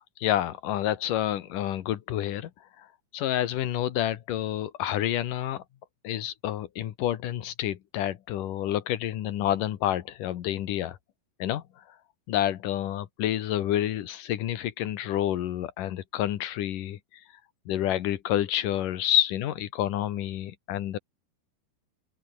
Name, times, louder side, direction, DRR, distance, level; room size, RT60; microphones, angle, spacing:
voice 1, 0.0-2.5 2.8-2.9 3.1-5.6 6.0-11.0 11.4-11.6 12.3-17.0 17.7-21.0, left 12 dB, 65° left, 2.6 m, -28 dB
open air
omnidirectional pair, 4.8 m